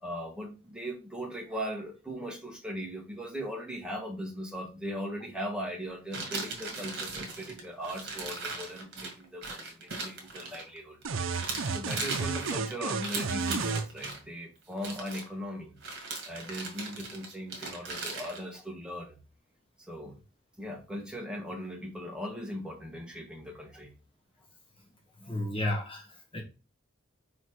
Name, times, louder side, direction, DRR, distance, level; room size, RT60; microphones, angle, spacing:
voice 1, 0.0-11.0 11.7-15.8 16.2-19.2 19.9-20.1 20.6-23.9 25.2-25.3, equal, 5° right, 0 dB, 1.4 m, -39 dB
sound 1, 6.1-11.0 11.3-14.2 14.7-15.3 15.8-18.4, right 3 dB, 55° right, 1.9 m, -38 dB
sound 2, 11.0-13.9, right 4 dB, 75° right, 0.6 m, -32 dB
voice 2, 25.2-26.4, left 1 dB, 25° left, 1 dB, 1.3 m, -33 dB
5.0 x 4.1 x 4.6 m, 0.31 s
head